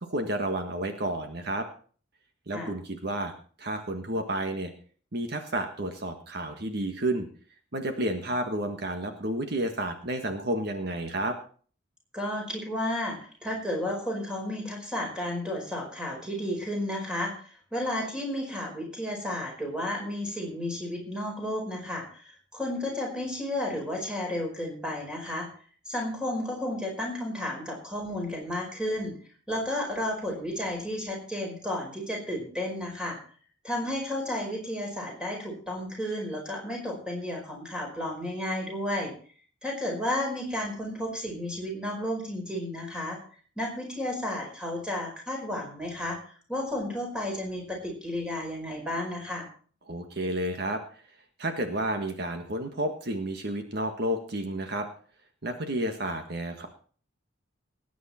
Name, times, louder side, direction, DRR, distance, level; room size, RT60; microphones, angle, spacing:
voice 1, 0.0-1.7 2.5-4.7 5.1-7.3 7.7-11.4 49.9-51.0 51.4-54.9 55.4-56.7, right 1 dB, 55° right, 5 dB, 1.6 m, -31 dB
voice 2, 12.1-25.5 25.9-29.2 29.5-33.2 33.6-39.1 39.6-43.2 43.6-49.5, left 1 dB, 5° right, 0 dB, 5.0 m, -32 dB
19.5 x 9.4 x 4.3 m, 0.43 s
head